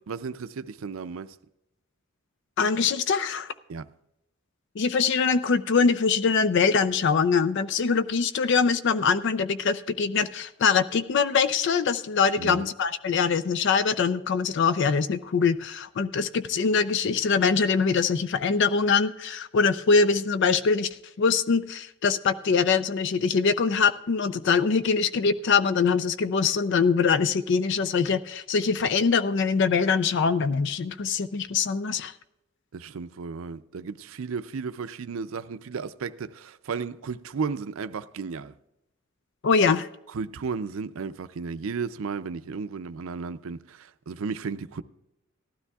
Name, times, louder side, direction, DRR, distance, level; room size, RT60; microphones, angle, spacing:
voice 1, 0.1-1.4 3.7-3.9 12.4-12.7 32.7-38.5 40.1-44.8, right 5 dB, 85° right, 0.5 m, -34 dB
voice 2, 2.6-3.5 4.8-20.9 21.2-32.1 39.4-39.9, left 5 dB, 60° left, 0.4 m, -23 dB
18.5 x 12.5 x 2.3 m
head